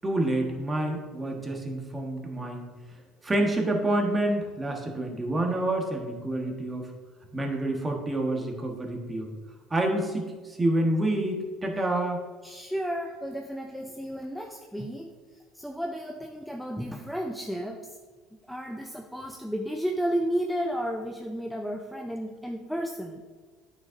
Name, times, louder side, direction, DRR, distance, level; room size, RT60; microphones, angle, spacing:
voice 1, 0.0-2.6 3.2-6.9 7.3-9.3 9.7-12.2, right 1 dB, 20° right, 2 dB, 1.4 m, -28 dB
voice 2, 12.4-18.0 18.5-23.2, equal, ahead, 1 dB, 0.6 m, -33 dB
9.3 x 6.5 x 2.6 m, 1.4 s
supercardioid pair, 105°, 0 cm